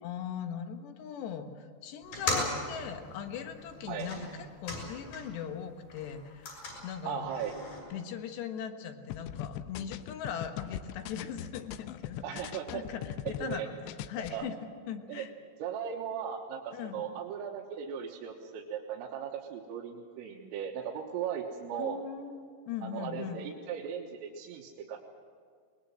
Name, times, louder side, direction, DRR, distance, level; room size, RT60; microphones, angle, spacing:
voice 1, 0.0-7.3 7.9-13.1 13.4-14.6 14.9-15.3 16.7-17.0 21.7-23.4, left 8 dB, 70° left, 6 dB, 3.1 m, -40 dB
sound 1, 2.0-5.5 5.8-7.8, left 2 dB, 50° left, 8.1 m, -38 dB
voice 2, 7.1-7.5 12.2-12.9 13.3-13.7 14.3-14.5 15.1-15.3 15.6-22.0 22.8-25.0, right 8 dB, 90° right, -1 dB, 4.0 m, -37 dB
sound 2, 9.1-13.6 13.9-14.3, left 12 dB, 85° left, 2.6 m, -40 dB
22.0 x 21.5 x 7.7 m, 2.1 s
omnidirectional pair, 5.8 m